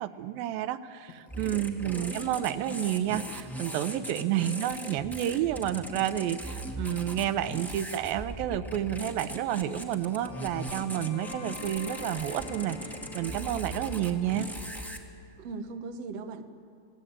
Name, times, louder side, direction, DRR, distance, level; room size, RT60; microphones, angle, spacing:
voice 1, 0.0-12.8 13.1-14.5, right 12 dB, 85° right, 12 dB, 2.6 m, -30 dB
sound 1, 1.1-8.3 8.5-15.0, left 5 dB, 75° left, 3.8 m, -49 dB
sound 2, 1.3-15.0, right 1 dB, ahead, 0.6 m, -39 dB
voice 2, 1.8-2.2 4.3-4.5 15.4-16.4, right 4 dB, 60° right, 7 dB, 1.8 m, -39 dB
30.0 x 19.0 x 8.8 m, 2.4 s
omnidirectional pair, 4.1 m